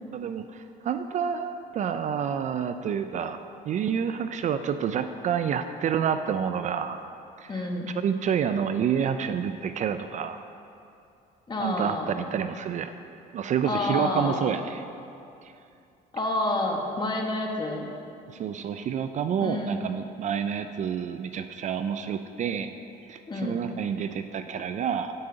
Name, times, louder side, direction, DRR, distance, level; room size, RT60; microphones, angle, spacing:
voice 1, 0.1-3.4 3.7-7.0 7.4-7.7 8.0-10.4 11.6-12.9 13.3-14.8 15.4-15.5 18.3-22.7 23.1-25.1, right 7 dB, 45° right, 9 dB, 0.4 m, -28 dB
voice 2, 7.5-7.9 11.5-12.1 13.6-14.5 16.1-17.9 19.4-19.8 23.3-23.6, left 2 dB, 25° left, 1 dB, 1.2 m, -29 dB
9.4 x 8.8 x 3.9 m, 2.6 s
cardioid pair, 110°, 17 cm